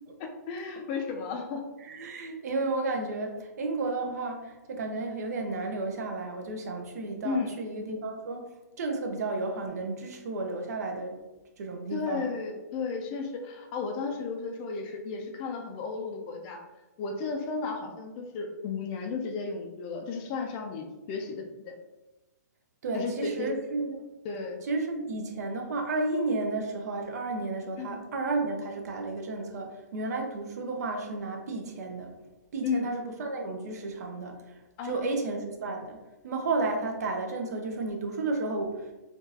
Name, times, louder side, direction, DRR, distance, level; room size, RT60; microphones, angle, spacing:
voice 1, 0.2-1.6 7.2-7.5 11.9-16.6 17.0-21.7 22.9-23.5 24.2-24.6 27.8-28.0 32.6-32.9 34.8-35.1, left 4 dB, 25° left, 3 dB, 0.4 m, -34 dB
voice 2, 1.8-8.4 8.8-11.2 11.6-12.2 22.8-24.0 24.6-32.2 32.5-36.0 36.2-38.9, right 3 dB, 60° right, 3 dB, 0.7 m, -32 dB
3.7 x 2.4 x 2.7 m, 1.1 s
hypercardioid pair, 155°, 10 cm